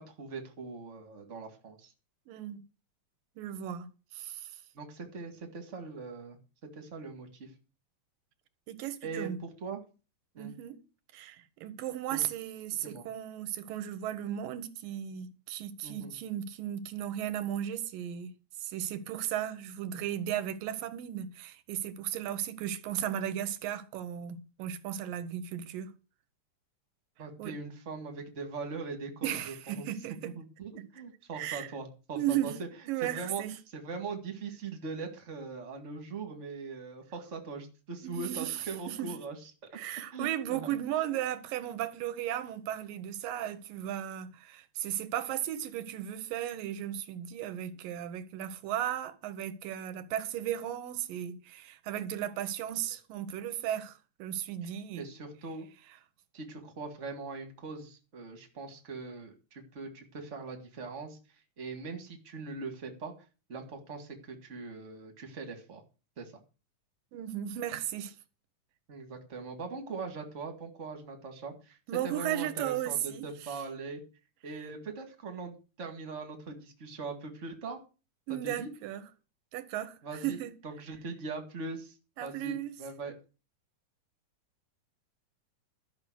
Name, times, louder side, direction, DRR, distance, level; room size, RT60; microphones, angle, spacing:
voice 1, 0.0-1.9 4.7-6.4 6.7-7.5 9.0-9.3 9.6-9.8 10.3-10.5 12.1-12.2 12.8-13.0 15.8-16.1 27.2-29.9 30.3-32.7 33.0-33.4 33.7-39.8 40.1-40.7 54.6-54.7 55.0-55.7 56.3-61.2 61.6-63.1 63.5-65.8 66.2-66.3 68.9-71.8 72.0-74.0 74.4-77.8 78.4-78.7 80.0-81.9 82.2-83.1, right 4 dB, 30° right, 1.7 m, -41 dB
voice 2, 2.3-2.6 3.4-4.5 8.7-9.4 10.4-10.8 11.1-18.3 18.6-25.9 27.4-27.6 29.2-30.3 31.3-31.7 32.2-32.5 32.9-33.5 38.0-39.1 39.7-55.1 67.1-68.2 71.9-73.3 78.3-79.0 79.5-80.5 82.2-82.8, right 11 dB, 90° right, 2.7 m, -35 dB
12.5 x 6.7 x 6.2 m
omnidirectional pair, 3.8 m